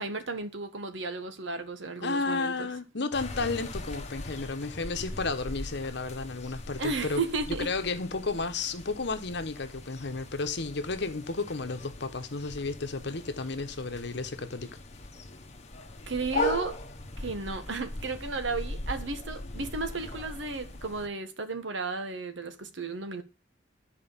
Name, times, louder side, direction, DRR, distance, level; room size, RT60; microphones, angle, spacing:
voice 1, 0.0-2.7 6.8-7.7 16.1-16.8 17.2-23.2, right 3 dB, 80° right, 1.3 m, -34 dB
voice 2, 2.0-7.2 7.6-14.8, left 3 dB, 65° left, 1.1 m, -32 dB
sound 1, 3.1-21.1, left 1 dB, 40° left, 1.3 m, -39 dB
11.0 x 4.7 x 7.2 m
head